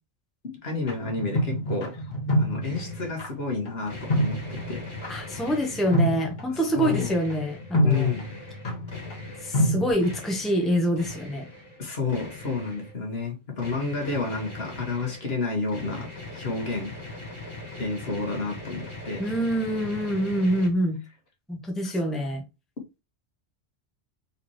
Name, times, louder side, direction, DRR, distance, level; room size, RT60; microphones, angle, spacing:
voice 1, 0.4-1.9 2.4-4.8 5.3-5.4 6.5-7.2 7.8-8.3 11.8-16.1 16.3-16.9 17.8-19.2 21.8-21.9, left 4 dB, 60° left, 1.8 m, -30 dB
sound 1, 0.9-9.9, equal, 40° left, 1.6 m, -28 dB
sound 2, 2.6-3.2 3.9-6.2 6.9-9.7 10.0-11.8 12.1-12.9 13.6-20.7, left 2 dB, 25° left, 2.4 m, -41 dB
voice 2, 5.1-8.1 9.4-11.5 19.2-21.0 21.5-22.4, equal, ahead, 1.0 m, -26 dB
4.2 x 4.2 x 3.0 m
omnidirectional pair, 1.2 m